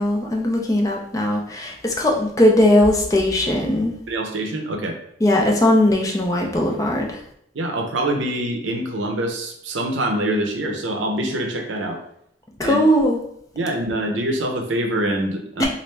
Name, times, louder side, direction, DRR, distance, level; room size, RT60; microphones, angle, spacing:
voice 1, 0.0-3.9 5.2-7.2 12.6-13.2 15.6-15.7, left 1 dB, 20° left, 0 dB, 0.4 m, -19 dB
voice 2, 4.1-5.0 7.5-12.0 12.6-12.8 13.5-15.7, right 1 dB, 75° right, 3 dB, 0.6 m, -25 dB
3.1 x 2.5 x 3.2 m, 0.72 s
head